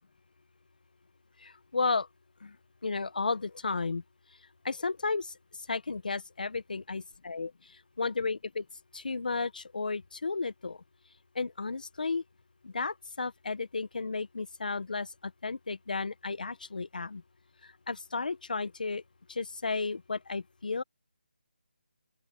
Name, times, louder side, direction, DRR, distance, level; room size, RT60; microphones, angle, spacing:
voice 1, 1.4-2.1 2.4-2.5 2.8-4.0 4.6-5.3 5.7-7.5 8.0-8.6 8.9-10.8 11.3-12.2 12.6-15.1 15.4-17.2 17.9-19.0 19.3-20.8, left 4 dB, 55° left, 1.1 m, -33 dB
open air
hypercardioid pair, 175°, 5 cm